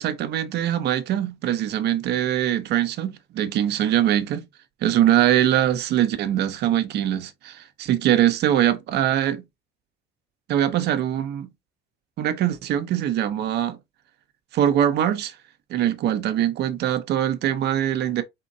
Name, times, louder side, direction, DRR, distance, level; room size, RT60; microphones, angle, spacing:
voice 1, 0.0-4.4 4.8-9.4 10.5-11.5 12.2-13.8 14.5-15.3 15.7-18.2, right 11 dB, 60° right, 0.9 m, -22 dB
4.3 x 3.7 x 2.7 m
cardioid pair, 115°, 19 cm